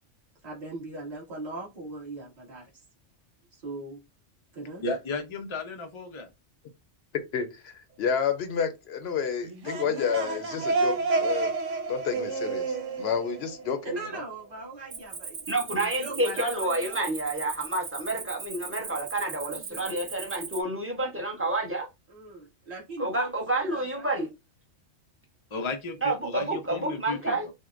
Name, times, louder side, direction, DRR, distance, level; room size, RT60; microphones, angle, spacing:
voice 1, 0.4-2.8 3.5-4.0 4.5-4.9 13.8-15.5 15.7-17.1 18.6-19.0 19.4-20.0 22.1-24.2, right 2 dB, 35° right, 1.5 m, -40 dB
voice 2, 4.8-6.3 25.5-27.5, left 3 dB, 50° left, 0.3 m, -34 dB
voice 3, 7.1-11.5 11.9-13.8, left 7 dB, 65° left, 0.8 m, -30 dB
sound 1, 9.4-14.2, right 3 dB, 90° right, 1.1 m, -30 dB
Cricket, 14.9-20.6, right 5 dB, 60° right, 1.1 m, -39 dB
voice 4, 15.5-21.9 23.0-24.3 26.0-27.5, right 2 dB, 15° right, 0.7 m, -29 dB
6.2 x 2.1 x 2.5 m
omnidirectional pair, 1.2 m